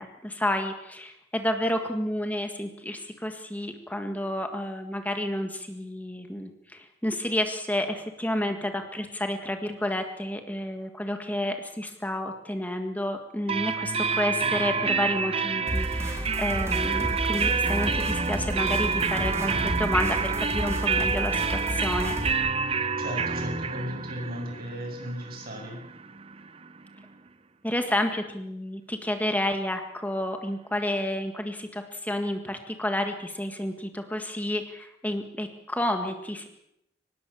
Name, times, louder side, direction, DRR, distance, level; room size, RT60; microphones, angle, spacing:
voice 1, 0.0-22.2 27.6-36.5, left 1 dB, 10° left, 5 dB, 1.7 m, -30 dB
sound 1, 13.5-27.1, right 5 dB, 35° right, 0.8 m, -28 dB
sound 2, 15.7-22.3, right 1 dB, 15° right, 4.3 m, -31 dB
voice 2, 23.0-25.8, equal, 55° right, 2 dB, 7.2 m, -35 dB
24.5 x 20.0 x 7.1 m, 0.82 s
head